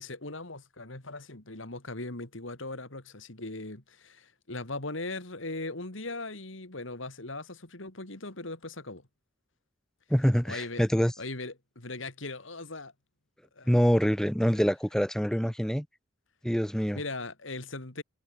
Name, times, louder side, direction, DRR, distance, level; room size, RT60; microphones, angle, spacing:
voice 1, 0.0-9.0 10.5-10.8 11.2-12.9 13.6-13.8 16.9-18.0, left 2 dB, 70° left, 3.0 m, -39 dB
voice 2, 10.1-11.1 13.7-15.8 16.4-17.0, equal, 5° left, 1.0 m, -25 dB
head